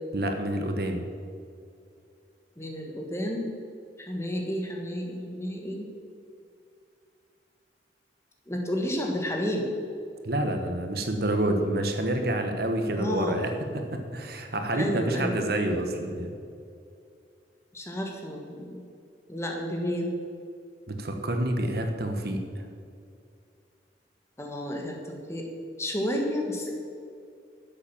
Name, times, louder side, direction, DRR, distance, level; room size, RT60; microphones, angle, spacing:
voice 1, 0.1-1.0 10.2-13.5 13.9-16.3 20.9-22.6, right 1 dB, 60° right, 5 dB, 1.2 m, -28 dB
voice 2, 2.6-3.5 4.0-5.9 8.5-9.7 13.0-13.4 14.7-15.4 17.7-18.8 19.3-20.1 24.4-25.5 25.8-26.7, equal, 15° left, 1 dB, 1.6 m, -31 dB
11.5 x 7.6 x 7.1 m, 2.4 s
head